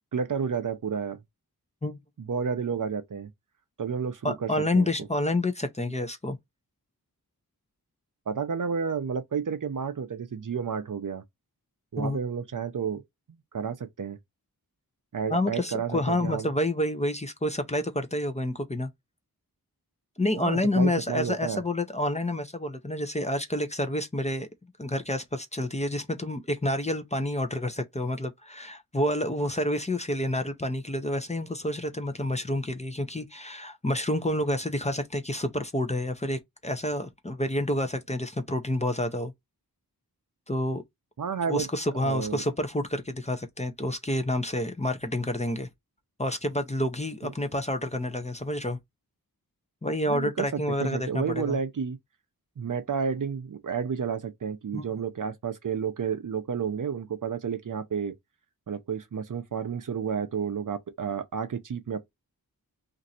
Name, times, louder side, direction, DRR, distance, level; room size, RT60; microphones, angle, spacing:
voice 1, 0.1-1.2 2.2-3.3 3.8-4.9 8.3-11.2 11.9-13.0 13.5-14.2 15.1-16.5 20.4-21.6 41.2-41.7 42.0-42.4 47.2-47.3 50.0-52.0 52.6-58.1 58.7-62.0, right 6 dB, 55° right, 0.5 m, -31 dB
voice 2, 4.2-6.4 12.0-12.2 15.3-18.9 20.2-24.5 24.8-39.3 40.5-40.8 41.5-45.7 46.2-48.8 49.8-51.6 54.7-54.8, left 1 dB, 20° left, 0.6 m, -29 dB
2.9 x 2.6 x 2.6 m
wide cardioid pair, 65°, 37 cm